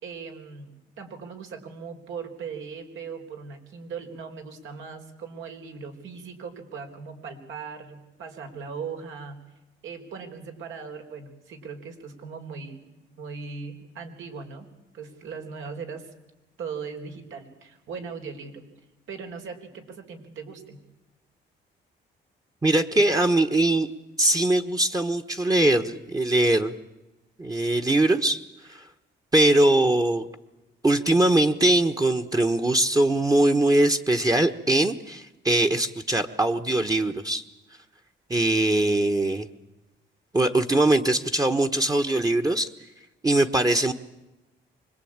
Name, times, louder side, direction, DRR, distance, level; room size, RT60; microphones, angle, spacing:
voice 1, 0.0-9.4 9.8-12.8 13.1-14.7 14.9-16.1 16.6-18.7 19.1-20.8, right 5 dB, 80° right, 5 dB, 4.6 m, -39 dB
voice 2, 22.6-23.9 24.2-26.7 27.4-28.4 28.7-28.8 29.3-30.3 30.8-37.4 38.3-39.5 40.3-42.7 43.2-43.9, right 1 dB, 20° right, 5 dB, 1.2 m, -21 dB
25.0 x 21.0 x 8.9 m, 1.0 s
cardioid pair, 90°, 20 cm